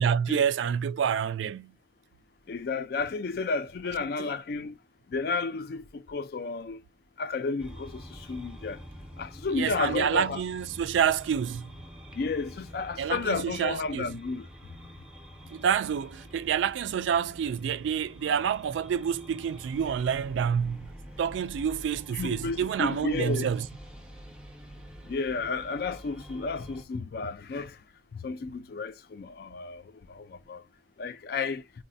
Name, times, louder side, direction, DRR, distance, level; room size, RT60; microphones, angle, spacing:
voice 1, 0.0-1.7 4.2-4.3 9.5-11.7 13.0-14.1 15.5-20.9 21.2-23.7, right 8 dB, 85° right, 0.3 m, -28 dB
voice 2, 2.5-4.7 5.1-6.8 7.2-8.8 9.2-10.4 12.1-14.5 22.1-23.5 25.0-27.8 28.1-30.6 31.0-31.6, left 4 dB, 55° left, 0.4 m, -32 dB
sound 1, 7.6-26.8, equal, 5° right, 0.5 m, -46 dB
4.0 x 2.1 x 2.5 m
head